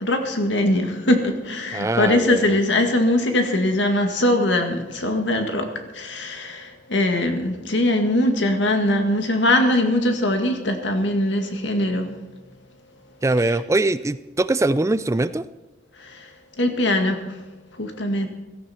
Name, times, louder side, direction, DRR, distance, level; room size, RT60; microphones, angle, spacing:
voice 1, 0.0-12.1 16.0-16.3 16.6-17.4 17.7-18.3, left 1 dB, 90° left, 5 dB, 2.0 m, -21 dB
voice 2, 1.7-2.4 13.2-15.5, right 2 dB, 15° right, 15 dB, 0.4 m, -22 dB
16.0 x 14.0 x 4.4 m, 1.1 s
head